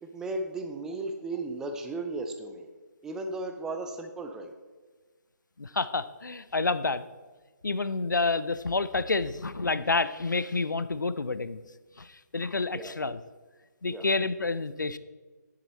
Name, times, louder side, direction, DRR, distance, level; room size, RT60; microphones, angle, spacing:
voice 1, 0.0-2.7 3.0-4.5 12.7-12.9 13.9-14.1, right 2 dB, 5° right, 5 dB, 0.5 m, -35 dB
voice 2, 5.6-7.0 7.6-11.6 12.0-13.2 13.8-15.0, left 3 dB, 80° left, 15 dB, 0.6 m, -29 dB
9.8 x 7.6 x 4.1 m, 1.4 s
figure-of-eight pair, 145°, 10 cm